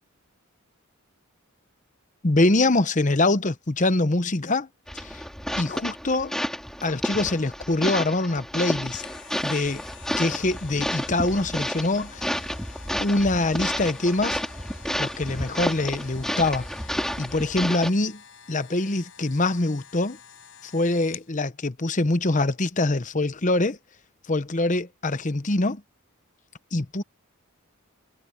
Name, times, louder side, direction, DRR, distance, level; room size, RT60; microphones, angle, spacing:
voice 1, 2.2-4.7 4.9-5.2 5.6-6.3 6.8-9.0 9.4-9.8 10.2-12.5 13.0-14.4 15.0-16.7 17.2-18.2 18.5-20.2 20.6-23.8 24.3-25.8 26.7-27.0, left 2 dB, 35° left, 0.9 m, -24 dB
sound 1, 4.9-17.9, equal, ahead, 4.2 m, -31 dB
sound 2, 8.8-21.3 21.8-21.9, left 8 dB, 60° left, 7.2 m, -48 dB
head